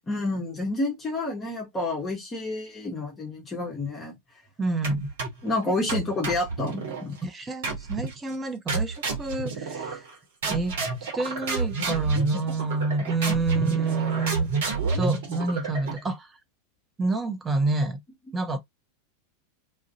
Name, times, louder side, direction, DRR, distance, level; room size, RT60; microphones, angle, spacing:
voice 1, 0.1-4.2 5.4-7.2, left 2 dB, 20° left, 0.8 m, -29 dB
voice 2, 4.6-5.1 7.2-10.0 10.5-10.7 11.1-14.5 14.9-16.3 17.0-18.0 18.3-18.6, right 3 dB, 15° right, 0.6 m, -28 dB
sound 1, 4.8-5.5 5.9-7.1 7.6-8.2 8.7-10.1 10.4-16.1, right 4 dB, 55° right, 0.9 m, -30 dB
2.4 x 2.1 x 2.6 m
figure-of-eight pair, 90°, 0 cm